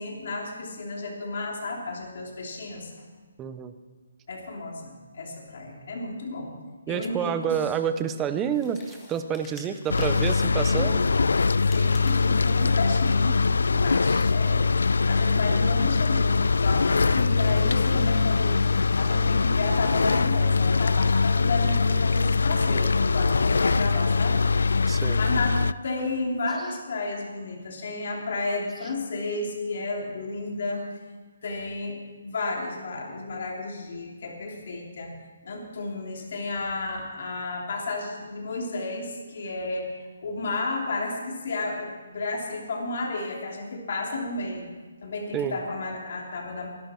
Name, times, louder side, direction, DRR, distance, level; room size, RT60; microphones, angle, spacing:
voice 1, 0.0-2.9 4.3-6.5 6.9-7.6 10.5-10.9 11.7-13.4 13.7-14.7 15.1-18.6 19.0-30.8 31.4-32.0 32.2-35.1 35.4-44.7 45.0-46.7, left 3 dB, 45° left, 0 dB, 3.1 m, -32 dB
voice 2, 3.4-3.7 6.9-11.0 13.7-14.0 24.9-25.2 45.3-45.6, right 8 dB, 10° right, 10 dB, 0.5 m, -29 dB
sound 1, 8.5-10.5 11.4-13.2, left 3 dB, 10° left, 1.6 m, -49 dB
sound 2, 9.9-25.7, left 4 dB, 90° left, 0.4 m, -22 dB
24.0 x 11.5 x 4.4 m, 1.4 s
hypercardioid pair, 180°, 0 cm